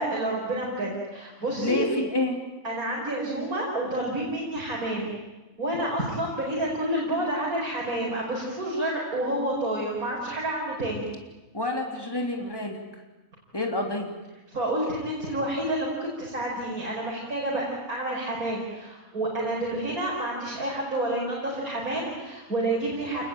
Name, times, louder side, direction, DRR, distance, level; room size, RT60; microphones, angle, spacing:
voice 1, 0.0-1.9 2.6-5.1 5.6-11.1 14.5-23.3, right 1 dB, 85° right, -4 dB, 6.0 m, -29 dB
voice 2, 1.6-2.4 11.5-12.8 13.5-14.1, left 2 dB, 15° left, 2 dB, 3.5 m, -28 dB
29.0 x 21.0 x 9.0 m, 1.1 s
omnidirectional pair, 1.5 m